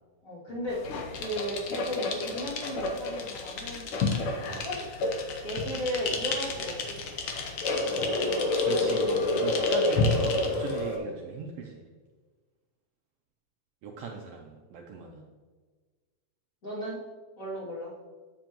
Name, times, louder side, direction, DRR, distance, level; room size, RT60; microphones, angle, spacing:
voice 1, 0.2-0.8 1.1-4.3 4.6-4.9 5.4-7.2 11.0-11.2 15.0-15.3 16.6-17.0 17.4-17.9, equal, 30° left, -8 dB, 2.4 m, -35 dB
sound 1, 0.7-11.0, left 2 dB, 70° left, 1.3 m, -29 dB
voice 2, 8.1-11.8 13.8-15.2, right 4 dB, 90° right, 1 dB, 1.3 m, -39 dB
7.7 x 7.3 x 2.9 m, 1.4 s
omnidirectional pair, 3.4 m